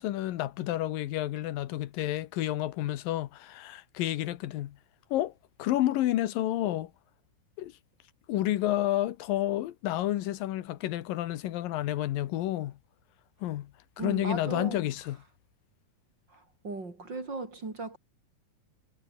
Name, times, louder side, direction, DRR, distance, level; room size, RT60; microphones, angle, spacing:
voice 1, 0.0-4.8 5.1-5.3 5.6-6.9 7.6-7.7 8.3-12.7 13.4-13.7 14.0-15.2, left 14 dB, 85° left, 2.9 m, -30 dB
voice 2, 14.0-14.9 16.3-18.0, right 3 dB, 30° right, 4.6 m, -37 dB
omnidirectional pair, 3.9 m